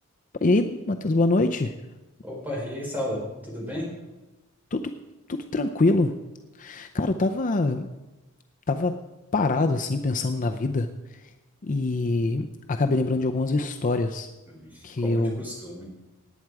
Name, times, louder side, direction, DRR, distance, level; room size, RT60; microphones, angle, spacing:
voice 1, 0.4-1.7 4.7-4.9 5.3-6.1 6.6-7.9 8.7-9.0 9.3-11.2 11.6-14.3 14.8-15.4, left 2 dB, 35° left, 6 dB, 0.5 m, -24 dB
voice 2, 2.2-3.9 14.5-15.8, left 1 dB, 10° right, -3 dB, 4.4 m, -33 dB
18.5 x 8.9 x 4.8 m, 1.1 s
head